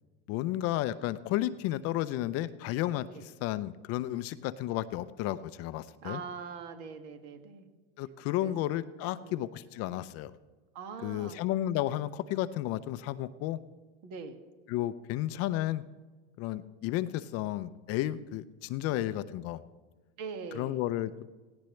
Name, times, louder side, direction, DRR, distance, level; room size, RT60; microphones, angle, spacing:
voice 1, 0.3-6.2 8.0-10.4 11.0-13.6 14.7-15.8 16.4-19.6 20.5-21.2, left 14 dB, 45° left, 14 dB, 0.6 m, -32 dB
voice 2, 6.0-7.7 8.4-8.7 9.2-9.5 10.7-11.4 14.0-14.4 18.9-19.1 20.2-20.8, right 5 dB, 55° right, 6 dB, 2.1 m, -42 dB
17.0 x 17.0 x 3.3 m, 1.3 s
supercardioid pair, 120°, 34 cm